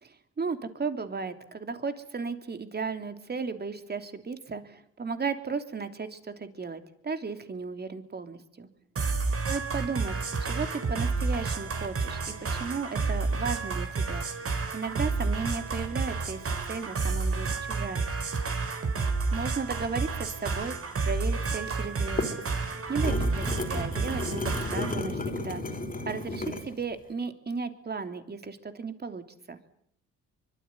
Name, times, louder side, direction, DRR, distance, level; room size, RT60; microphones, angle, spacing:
voice 1, 0.0-8.7 9.4-14.3 14.7-18.1 19.3-20.7 21.0-22.2 22.9-25.2 25.4-25.6 26.1-29.2 29.5-29.6, right 4 dB, 35° right, 8 dB, 3.2 m, -35 dB
sound 1, 9.0-25.0, right 4 dB, 50° right, 4.7 m, -30 dB
sound 2, 21.9-26.7, left 2 dB, 30° left, 4.3 m, -33 dB
24.0 x 24.0 x 9.6 m, 0.68 s
cardioid pair, 90°, 30 cm